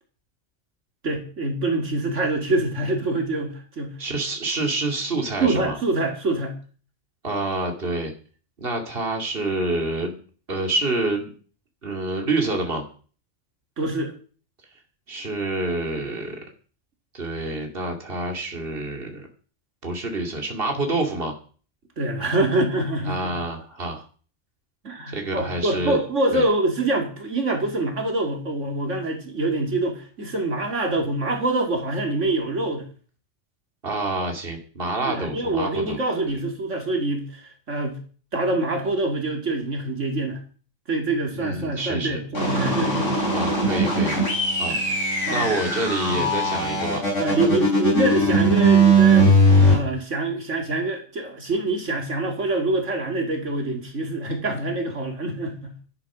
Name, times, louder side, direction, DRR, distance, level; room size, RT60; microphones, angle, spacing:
voice 1, 1.0-4.0 5.4-6.6 13.8-14.1 22.0-23.3 24.8-32.9 35.1-38.0 38.3-40.4 40.9-43.1 44.7-44.9 45.3-45.5 46.1-46.2 47.2-49.4 49.7-55.7, right 2 dB, 75° right, 3 dB, 2.8 m, -25 dB
voice 2, 4.0-5.8 7.2-8.1 8.6-10.2 10.5-11.3 11.8-12.8 15.1-16.4 17.1-19.3 19.8-21.3 23.1-24.0 25.1-26.0 26.3-26.4 33.8-36.0 36.3-36.4 41.3-42.2 43.3-44.2 44.6-44.8 45.3-47.0, right 2 dB, 50° right, 2 dB, 2.7 m, -27 dB
sound 1, 42.3-49.7, right 1 dB, 80° left, 6.6 m, -19 dB
13.0 x 11.0 x 6.2 m, 0.41 s
omnidirectional pair, 1.3 m